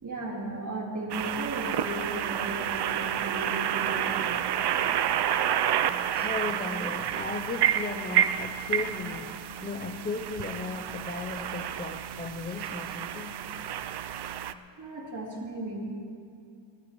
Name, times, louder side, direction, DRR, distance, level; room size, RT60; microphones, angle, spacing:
voice 1, 0.0-4.6 14.8-15.8, right 1 dB, 40° right, -4 dB, 4.0 m, -36 dB
sound 1, 1.1-14.5, right 10 dB, 55° right, 0.6 m, -29 dB
voice 2, 6.1-13.3, left 4 dB, 20° left, 5 dB, 0.6 m, -36 dB
30.0 x 13.0 x 3.1 m, 2.5 s
cardioid pair, 100°, 49 cm